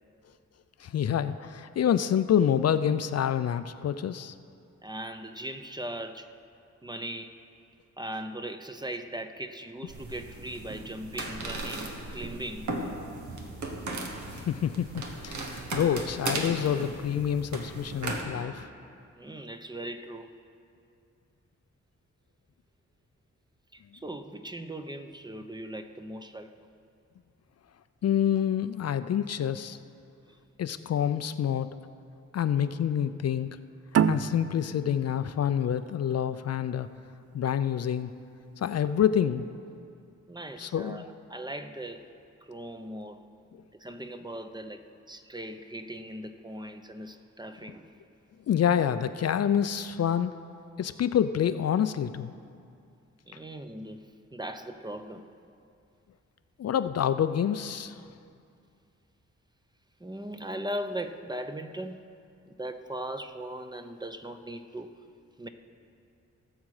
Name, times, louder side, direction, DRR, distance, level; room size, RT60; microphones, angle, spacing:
voice 1, 0.8-4.3 14.3-18.7 28.0-29.8 30.6-31.7 32.3-33.5 34.1-36.9 37.3-38.1 38.6-39.5 40.6-41.1 48.5-50.4 50.8-52.3 56.6-58.0, left 9 dB, 60° left, 11 dB, 0.5 m, -27 dB
voice 2, 4.8-6.3 6.8-7.4 8.0-12.7 16.0-16.1 19.1-20.3 23.7-26.5 30.3-30.4 40.3-42.0 42.5-43.2 43.8-47.9 53.3-55.2 60.0-62.0 62.5-64.9 65.4-65.5, right 1 dB, 15° right, 7 dB, 0.7 m, -39 dB
sound 1, 9.9-18.2, right 2 dB, 80° right, 1.4 m, -36 dB
sound 2, 33.9-37.1, right 8 dB, 55° right, 0.5 m, -29 dB
17.5 x 7.4 x 4.9 m, 2.4 s
cardioid pair, 70°, 29 cm